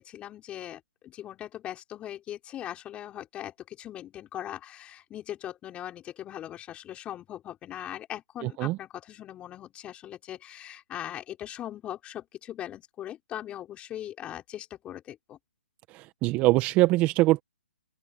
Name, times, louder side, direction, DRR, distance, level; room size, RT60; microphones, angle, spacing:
voice 1, 0.0-15.4, left 12 dB, 15° left, 6.1 m, -40 dB
voice 2, 8.4-8.8 15.9-17.4, right 19 dB, 25° right, 1.2 m, -23 dB
open air
hypercardioid pair, 145°, 7 cm